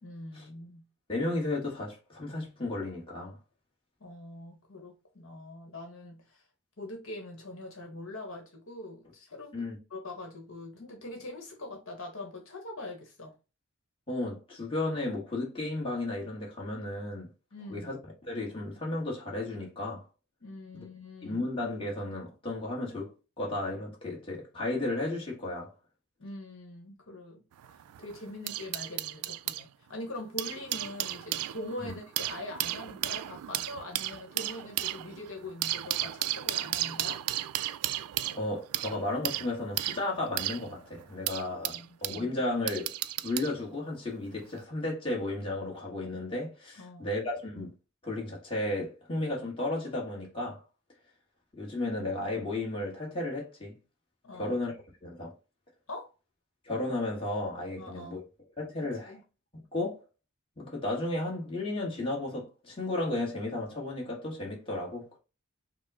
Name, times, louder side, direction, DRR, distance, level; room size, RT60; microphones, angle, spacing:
voice 1, 0.0-0.8 4.0-6.4 6.8-9.6 9.9-13.3 17.5-17.9 20.4-21.4 26.2-27.4 27.7-37.2 41.3-41.9 46.8-47.1 54.2-54.6 55.9-56.1 57.8-58.2 58.8-59.2, left 2 dB, 60° left, 1.1 m, -43 dB
voice 2, 1.1-3.4 9.5-9.8 14.1-17.3 17.7-20.0 20.7-20.8 21.2-25.7 31.8-31.9 38.3-41.7 42.0-42.9 43.2-47.7 48.0-50.6 51.6-53.7 54.3-54.7 55.0-55.3 56.6-58.2 58.6-59.2 59.5-60.0 60.6-65.2, left 2 dB, 25° left, 1.3 m, -34 dB
sound 1, 27.5-29.6 30.2-42.2 42.7-43.5 44.4-44.6, right 15 dB, 85° right, 0.3 m, -34 dB
5.3 x 2.1 x 3.6 m
head